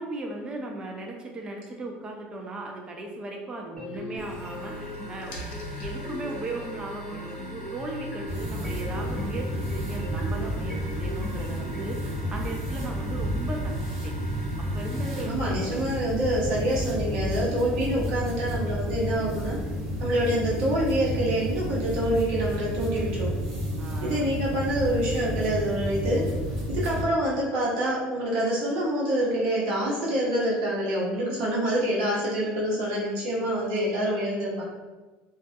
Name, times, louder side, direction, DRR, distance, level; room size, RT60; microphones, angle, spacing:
voice 1, 0.0-13.7 14.0-14.4 14.7-15.3 23.8-24.2, right 2 dB, 20° right, 1 dB, 0.4 m, -37 dB
sound 1, 3.8-12.1, equal, 15° left, 0.7 m, -40 dB
sound 2, 4.1-15.3, equal, 60° left, 0.6 m, -41 dB
sound 3, 8.3-27.0, equal, 50° right, 0.8 m, -31 dB
voice 2, 15.2-19.6 20.0-23.3 24.0-26.3 26.7-34.6, right 1 dB, 85° right, -5 dB, 0.8 m, -26 dB
2.3 x 2.1 x 2.7 m, 1.2 s
cardioid pair, 130°, 4 cm